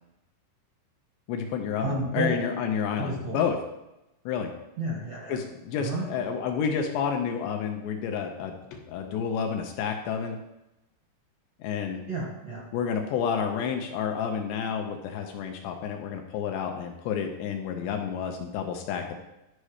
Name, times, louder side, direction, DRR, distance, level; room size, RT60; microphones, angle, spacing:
voice 1, 1.3-3.6 4.3-4.5 5.3-10.4 11.6-12.0 12.7-19.2, left 7 dB, 80° left, 4 dB, 2.7 m, -30 dB
voice 2, 1.8-2.4 3.0-3.4 4.8-5.4 5.8-6.0 12.1-12.7, right 2 dB, 65° right, -3 dB, 1.6 m, -31 dB
11.5 x 5.4 x 5.0 m, 0.92 s
omnidirectional pair, 5.4 m